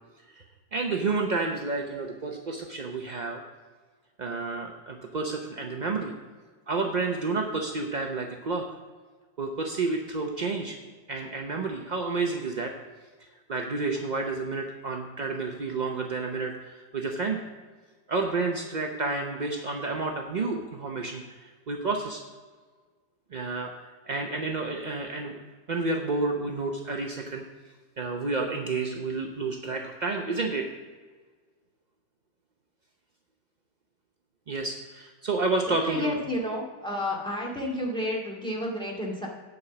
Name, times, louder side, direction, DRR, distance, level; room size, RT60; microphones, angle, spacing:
voice 1, 0.7-3.4 4.2-6.1 6.7-8.6 9.4-10.8 11.1-12.7 13.5-17.4 18.1-22.2 23.3-25.4 25.7-27.4 28.0-30.7 34.5-36.1, right 3 dB, 55° right, 2 dB, 0.4 m, -30 dB
voice 2, 35.8-39.3, left 1 dB, 5° left, -3 dB, 2.1 m, -31 dB
9.8 x 5.4 x 7.0 m, 1.4 s
omnidirectional pair, 1.9 m